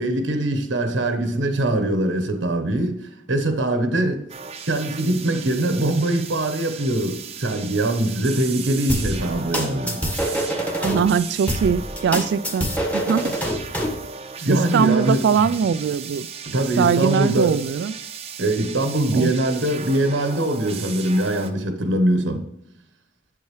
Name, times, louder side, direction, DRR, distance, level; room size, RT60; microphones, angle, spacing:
voice 1, 0.0-4.3 4.6-10.0 14.4-15.2 16.5-17.6 18.4-22.4, right 1 dB, 80° right, 1.0 m, -22 dB
sound 1, 4.3-21.5, right 6 dB, 35° right, 0.7 m, -36 dB
sound 2, 8.9-11.0 11.5-14.0, equal, 10° left, 1.5 m, -25 dB
voice 2, 10.8-13.4 14.5-16.3 16.8-17.9 19.1-19.3, right 6 dB, 65° right, 0.3 m, -21 dB
8.4 x 7.7 x 3.1 m
head